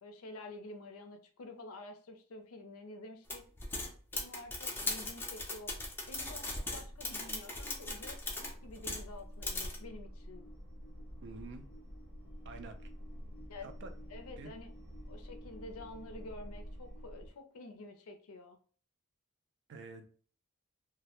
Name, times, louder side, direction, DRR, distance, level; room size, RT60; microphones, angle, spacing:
voice 1, 0.0-3.4 4.1-5.7 6.1-10.5 13.5-13.7 14.1-14.7 15.1-18.6, left 2 dB, 90° left, 6 dB, 0.5 m, -49 dB
sound 1, 3.3-9.1 9.4-9.8, left 2 dB, 10° left, 0.4 m, -39 dB
sound 2, 5.6-17.3, equal, 80° right, 1.0 m, -49 dB
voice 2, 11.2-11.6 12.4-12.9 13.6-13.9 14.4-14.5 19.7-20.1, right 4 dB, 55° right, 7 dB, 0.4 m, -48 dB
2.2 x 2.0 x 2.9 m, 0.43 s
head